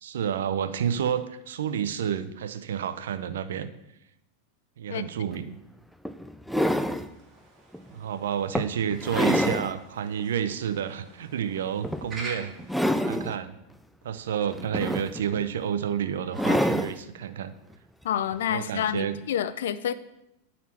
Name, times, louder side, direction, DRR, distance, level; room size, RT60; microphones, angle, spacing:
voice 1, 0.0-3.7 4.8-5.6 7.9-12.5 13.0-13.6 14.0-17.5 18.5-19.2, right 8 dB, 85° right, 11 dB, 0.6 m, -30 dB
sound 1, 5.3-5.4 6.0-7.1 7.7-7.9 8.5-9.7 10.2-10.3 11.8-12.2 12.6-13.3 14.5-15.4 16.3-17.0 18.3-18.4, equal, ahead, 0.3 m, -26 dB
sound 2, 6.8-13.1, right 2 dB, 25° right, 2.2 m, -46 dB
voice 2, 18.0-19.9, left 9 dB, 80° left, 14 dB, 0.5 m, -28 dB
11.0 x 4.2 x 4.3 m, 0.86 s
supercardioid pair, 125°, 0 cm